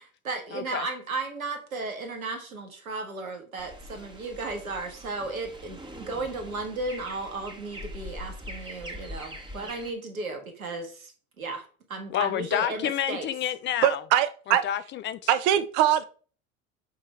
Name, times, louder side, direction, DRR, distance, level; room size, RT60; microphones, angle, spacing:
voice 1, 0.0-11.1 11.4-13.3, right 3 dB, 80° right, 1.7 m, -35 dB
voice 2, 0.5-0.9 12.1-14.0 14.5-15.3, left 10 dB, 30° left, 0.5 m, -29 dB
sound 1, 3.6-9.9, equal, 10° right, 1.7 m, -43 dB
voice 3, 13.8-14.6 15.3-16.0, right 11 dB, 50° right, 0.9 m, -22 dB
8.3 x 3.7 x 4.4 m
figure-of-eight pair, 75°, 41 cm